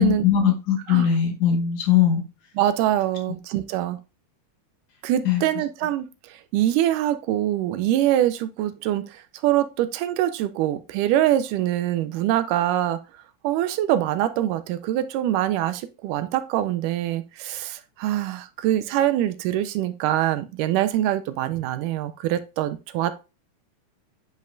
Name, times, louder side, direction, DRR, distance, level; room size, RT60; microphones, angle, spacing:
voice 1, 0.0-2.2 5.3-5.4, left 9 dB, 65° left, 2 dB, 2.4 m, -20 dB
voice 2, 2.6-4.0 5.0-13.0 13.4-23.2, right 12 dB, 85° right, 11 dB, 2.1 m, -24 dB
9.3 x 5.4 x 2.5 m, 0.29 s
omnidirectional pair, 3.7 m